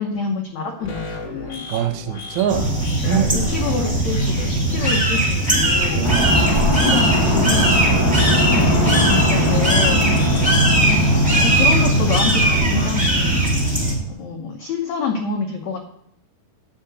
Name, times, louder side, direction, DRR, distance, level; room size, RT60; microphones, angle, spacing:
voice 1, 0.0-1.6 3.1-7.7 8.5-10.0 10.8-13.4 14.2-15.8, left 5 dB, 85° left, 2 dB, 1.5 m, -27 dB
sound 1, 0.8-12.9, left 3 dB, 70° left, 1.0 m, -35 dB
voice 2, 1.7-2.7 3.0-3.4 5.9-6.3 10.0-10.2, right 9 dB, 75° right, 4 dB, 1.7 m, -23 dB
sound 2, 2.5-13.9, right 1 dB, 5° right, 0.9 m, -19 dB
sound 3, 6.0-14.0, equal, 15° left, 4.4 m, -22 dB
9.6 x 5.8 x 7.9 m, 0.68 s
omnidirectional pair, 4.8 m